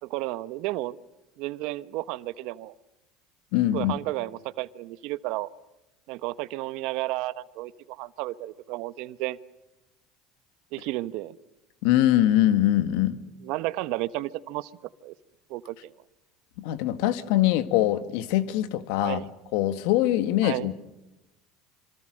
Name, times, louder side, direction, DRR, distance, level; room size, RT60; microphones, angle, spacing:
voice 1, 0.0-1.0 1.4-2.7 3.7-5.5 6.1-9.4 10.7-11.3 13.4-14.7 15.0-15.1 15.5-15.9 19.0-19.3 20.4-20.7, right 17 dB, 70° right, 15 dB, 1.0 m, -32 dB
voice 2, 3.5-3.9 11.8-13.2 16.6-19.2 19.5-20.7, left 13 dB, 75° left, 11 dB, 1.8 m, -23 dB
27.0 x 26.0 x 6.5 m, 0.97 s
supercardioid pair, 100°, 0 cm